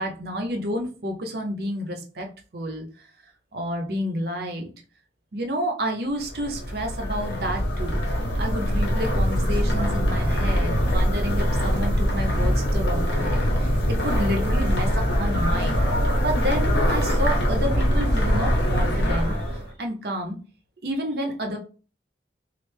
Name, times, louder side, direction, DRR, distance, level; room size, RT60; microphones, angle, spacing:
voice 1, 0.0-3.1 3.5-4.7 5.3-8.0 8.4-15.8 16.2-20.4 20.8-21.6, equal, 60° right, 3 dB, 0.7 m, -30 dB
sound 1, 6.2-19.7, equal, 80° left, 1.1 m, -23 dB
3.1 x 2.5 x 3.3 m, 0.37 s
head